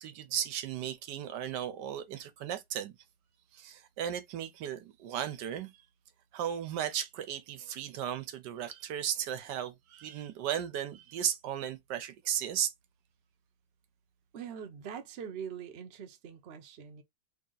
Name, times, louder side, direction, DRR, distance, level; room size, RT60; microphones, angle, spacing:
voice 1, 0.0-2.9 3.5-5.7 6.3-12.7, right 10 dB, 75° right, 1.2 m, -35 dB
voice 2, 14.3-17.0, right 7 dB, 55° right, 0.7 m, -43 dB
3.4 x 2.8 x 3.8 m
omnidirectional pair, 2.0 m